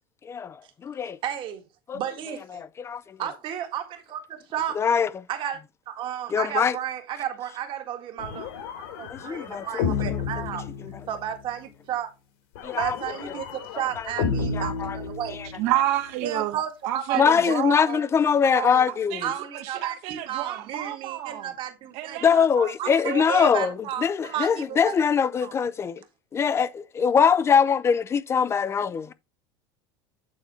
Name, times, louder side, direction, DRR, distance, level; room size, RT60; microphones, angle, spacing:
voice 1, 0.2-1.2 1.9-2.0 2.5-3.2 4.7-5.2 6.3-6.8 9.1-10.2 10.8-10.9 12.6-13.0 14.0-14.1 14.5-15.0 15.3-15.5 17.1-19.3 22.2-26.0 26.3-29.1, left 6 dB, 20° left, 0.6 m, -23 dB
voice 2, 1.2-1.6 1.9-2.6 3.2-4.9 5.3-5.6 5.9-8.5 8.9-10.7 11.1-12.1 12.8-15.4 16.2-17.6 17.9-18.0 18.5-18.9 19.2-22.2 22.8-24.9 25.4-25.5, right 10 dB, 40° right, 1.8 m, -32 dB
sound 1, 8.2-11.4 12.6-15.8, left 5 dB, 75° left, 2.8 m, -32 dB
voice 3, 15.5-17.8 18.9-21.5 21.9-23.7, right 14 dB, 60° right, 1.7 m, -31 dB
9.1 x 4.2 x 4.2 m
supercardioid pair, 135°, 12 cm